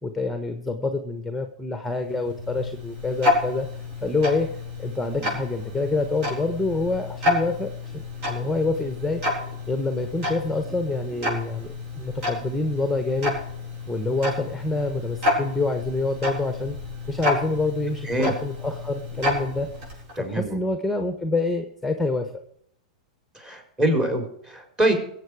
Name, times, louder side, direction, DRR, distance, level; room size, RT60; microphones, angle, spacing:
voice 1, 0.0-4.5 4.8-13.4 13.9-16.8 17.1-19.7 20.2-22.3, left 3 dB, ahead, 7 dB, 1.3 m, -27 dB
Tick-tock, 1.9-20.2, left 2 dB, 50° right, 7.4 m, -30 dB
voice 2, 20.2-20.6 23.3-24.9, right 1 dB, 20° right, 5 dB, 4.4 m, -25 dB
22.0 x 8.2 x 5.0 m, 0.73 s
hypercardioid pair, 100°, 4 cm